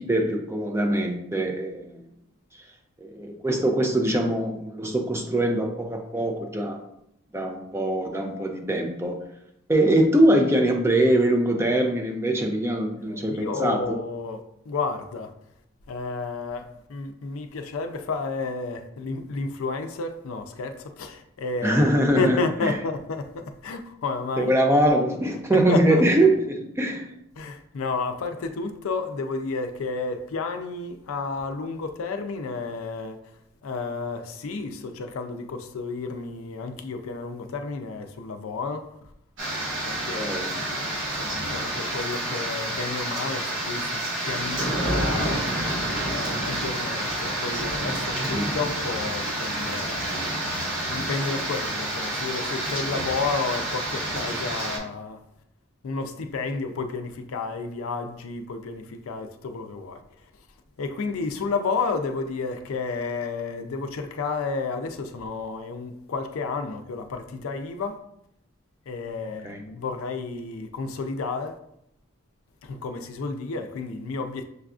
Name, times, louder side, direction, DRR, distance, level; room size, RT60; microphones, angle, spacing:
voice 1, 0.0-2.0 3.0-6.8 7.3-9.2 9.7-14.0 21.6-22.7 24.4-27.0 40.2-40.5 48.3-48.5 69.4-69.6, right 1 dB, 10° right, 0.3 m, -23 dB
voice 2, 13.1-15.3 15.9-21.8 22.1-24.5 25.5-26.1 27.4-33.2 33.6-38.9 39.8-45.4 46.1-50.1 50.9-55.2 55.8-60.0 60.8-68.0 68.9-71.6 72.6-74.4, left 4 dB, 85° left, 0.4 m, -31 dB
sound 1, 39.4-54.8, right 1 dB, 65° right, 1.3 m, -29 dB
6.5 x 2.4 x 2.4 m
head